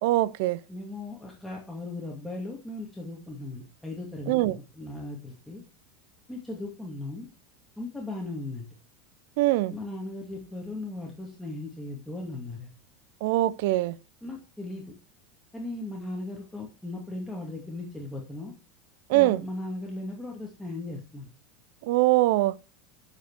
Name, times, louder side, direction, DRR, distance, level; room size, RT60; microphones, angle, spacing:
voice 1, 0.0-0.6 4.3-4.6 9.4-9.7 13.2-14.0 19.1-19.4 21.9-22.5, right 17 dB, 60° right, 0.4 m, -22 dB
voice 2, 0.7-5.6 6.3-7.3 7.8-8.7 9.7-12.7 14.2-14.9 15.5-18.5 19.1-21.3, left 2 dB, 5° left, 2.4 m, -37 dB
12.0 x 5.3 x 4.8 m
figure-of-eight pair, 80°, 0 cm